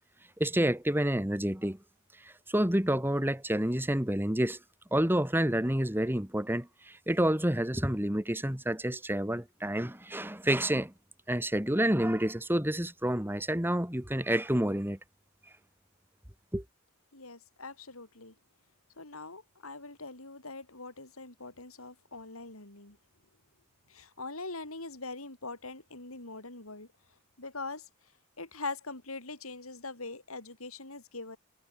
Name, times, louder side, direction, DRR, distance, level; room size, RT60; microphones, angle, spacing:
voice 1, 0.4-1.8 2.5-4.6 4.9-10.9 11.3-15.0 16.5-16.6, right 1 dB, 10° right, 2.4 m, -29 dB
voice 2, 17.1-18.3 19.0-23.0 23.9-26.9 27.4-27.9 28.4-31.4, left 3 dB, 85° left, 5.9 m, -42 dB
head